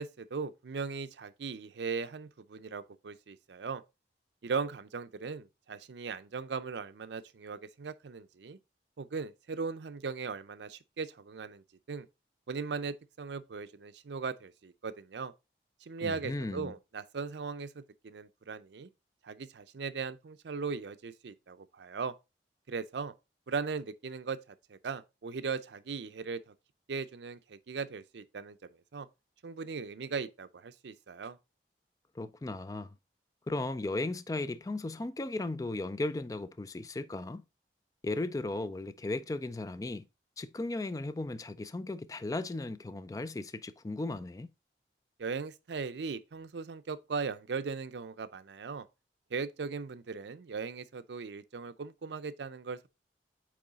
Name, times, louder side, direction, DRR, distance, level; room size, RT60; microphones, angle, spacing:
voice 1, 0.0-3.8 4.4-8.6 9.0-12.1 12.5-15.3 15.8-18.9 19.2-22.1 22.7-23.1 23.5-26.5 26.9-28.6 28.9-29.1 29.4-31.4 45.2-48.8 49.3-52.9, right 5 dB, 80° right, 0.5 m, -38 dB
voice 2, 16.0-16.7 32.2-32.9 33.5-37.4 38.0-40.1 40.4-44.5, left 2 dB, 20° left, 0.3 m, -36 dB
8.5 x 3.1 x 4.0 m
head